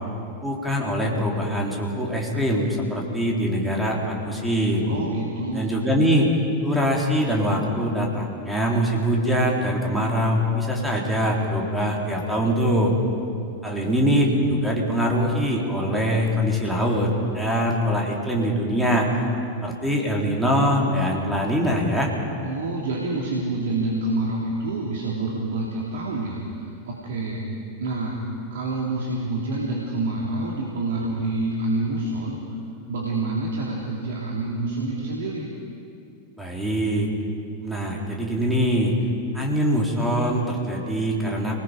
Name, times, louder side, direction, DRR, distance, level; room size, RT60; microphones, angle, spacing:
voice 1, 0.4-4.9 5.5-6.3 6.6-12.9 13.6-19.1 19.6-22.1 36.4-37.1 37.6-38.9 39.3-41.6, equal, ahead, -2 dB, 3.9 m, -23 dB
voice 2, 4.9-6.0 22.4-27.4 27.8-28.2 28.5-32.4 32.9-35.5, right 2 dB, 60° right, -3 dB, 3.2 m, -27 dB
27.5 x 20.0 x 5.3 m, 2.4 s
figure-of-eight pair, 90°, 0 cm